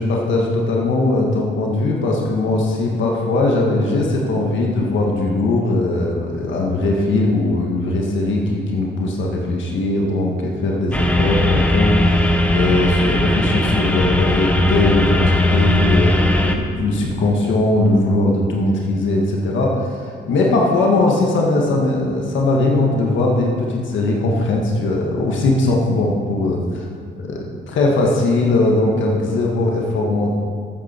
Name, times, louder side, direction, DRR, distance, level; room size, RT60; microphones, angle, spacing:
voice 1, 0.0-26.6 27.2-27.4 27.7-30.4, left 2 dB, 75° left, -1 dB, 1.6 m, -19 dB
sound 1, 10.9-16.6, left 1 dB, 5° left, 1.0 m, -18 dB
13.0 x 8.6 x 4.4 m, 2.2 s
cardioid pair, 90°, 20 cm